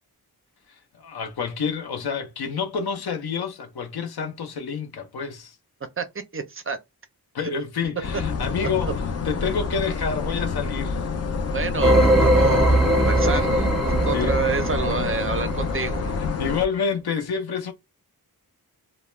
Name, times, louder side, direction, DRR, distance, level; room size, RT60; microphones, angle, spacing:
voice 1, 1.0-5.6 7.3-8.9 9.2-11.0 14.1-14.6 14.9-15.0 16.4-17.7, left 6 dB, 75° left, 0.7 m, -28 dB
voice 2, 6.3-6.8 11.5-16.2, right 4 dB, 35° right, 0.4 m, -28 dB
sound 1, 8.0-16.6, left 5 dB, 40° left, 0.4 m, -28 dB
sound 2, 11.8-16.1, right 1 dB, ahead, 0.7 m, -21 dB
2.2 x 2.1 x 2.9 m
wide cardioid pair, 150°, 38 cm